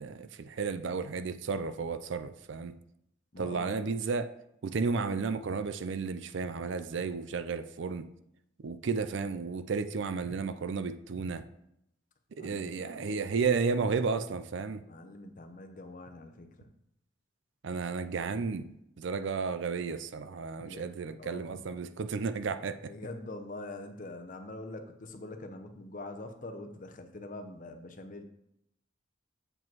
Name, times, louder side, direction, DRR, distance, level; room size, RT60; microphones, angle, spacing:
voice 1, 0.0-2.8 3.4-4.3 4.6-8.1 8.6-11.4 12.3-14.8 17.6-22.9, right 5 dB, 65° right, 11 dB, 0.4 m, -33 dB
voice 2, 3.3-3.9 12.4-13.2 14.9-16.7 20.6-20.9 21.2-21.8 22.9-28.2, left 2 dB, 40° left, 7 dB, 0.7 m, -44 dB
7.6 x 4.9 x 4.6 m, 0.79 s
head